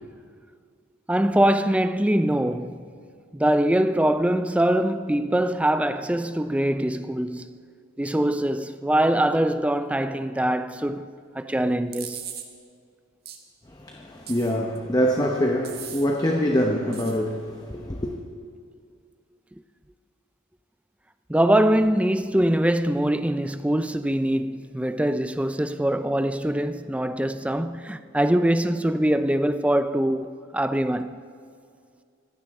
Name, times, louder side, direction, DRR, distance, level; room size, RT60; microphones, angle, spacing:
voice 1, 1.1-3.0 3.3-7.6 8.0-11.1 11.3-12.3 21.3-31.3, right 1 dB, 5° right, 0.4 m, -23 dB
sound 1, 11.9-12.5 13.3-13.4 14.3-14.8 15.6-16.1 16.9-17.2, right 9 dB, 50° right, 1.5 m, -38 dB
voice 2, 13.7-18.1, equal, 20° left, 1.0 m, -25 dB
25.0 x 15.5 x 3.7 m
head